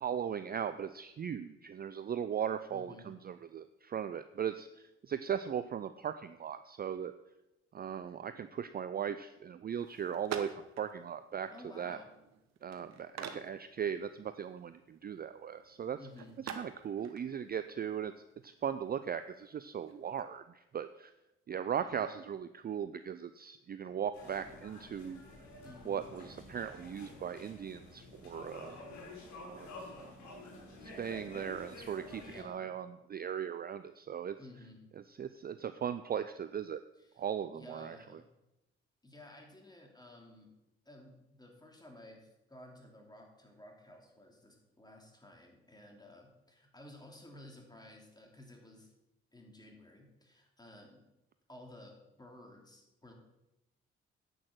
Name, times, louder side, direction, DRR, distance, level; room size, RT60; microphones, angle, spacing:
voice 1, 0.0-7.1 7.7-11.5 11.8-12.0 12.6-16.0 16.6-18.1 18.4-21.1 21.5-25.2 25.9-28.8 29.4-29.7 30.8-34.4 35.0-36.8 37.2-38.2, right 8 dB, 30° right, 11 dB, 0.5 m, -38 dB
voice 2, 2.7-3.1 11.5-12.1 16.0-16.3 21.7-22.2 25.6-26.0 32.2-32.7 34.4-34.8 37.0-37.2 37.5-38.3 39.0-40.5 40.8-48.9 49.3-51.0 51.5-53.1, left 1 dB, 15° left, 1 dB, 3.0 m, -54 dB
sound 1, 9.8-20.2, right 7 dB, 55° right, 1.1 m, -49 dB
sound 2, 24.1-32.4, left 2 dB, 60° left, 3.3 m, -50 dB
9.9 x 6.4 x 6.1 m, 0.92 s
hypercardioid pair, 45°, 32 cm